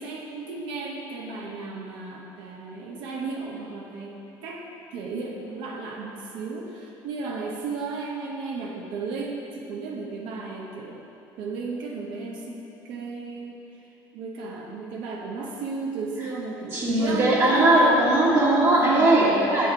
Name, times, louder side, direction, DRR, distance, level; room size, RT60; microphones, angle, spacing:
voice 1, 0.0-4.2 4.4-4.6 4.9-13.8 14.1-18.0 18.7-19.3, right 4 dB, 75° right, -1 dB, 1.0 m, -34 dB
voice 2, 16.7-19.7, right 1 dB, 40° right, -8 dB, 1.6 m, -19 dB
8.1 x 6.3 x 4.6 m, 2.8 s
cardioid pair, 140°, 8 cm